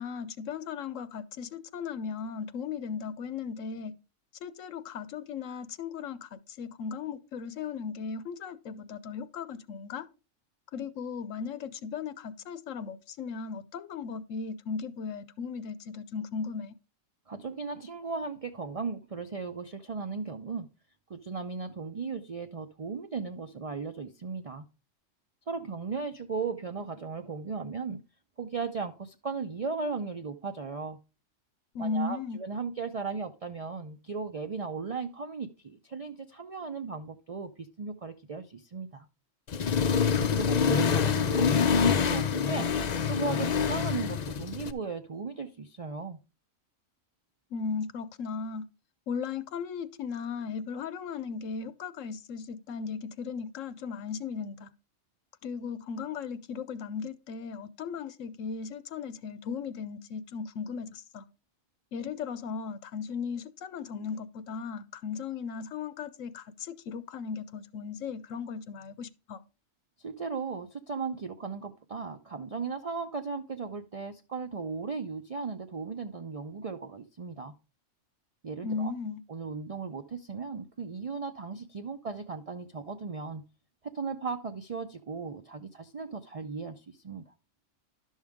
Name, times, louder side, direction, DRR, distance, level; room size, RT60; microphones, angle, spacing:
voice 1, 0.0-3.9 4.4-10.1 10.7-16.7 31.7-32.4 47.5-48.7 49.1-54.7 55.4-61.2 61.9-69.4 78.6-79.2, left 5 dB, 80° left, 1.0 m, -37 dB
voice 2, 17.3-20.7 21.1-24.6 25.5-28.0 28.4-31.0 31.8-39.1 40.2-41.5 41.8-42.7 43.0-46.2 70.0-77.5 78.4-78.9 79.3-83.4 83.8-87.3, right 4 dB, 40° right, 0.5 m, -36 dB
Accelerating revving vroom, 39.5-44.7, left 6 dB, 50° left, 0.5 m, -26 dB
11.5 x 6.4 x 3.5 m
omnidirectional pair, 1.3 m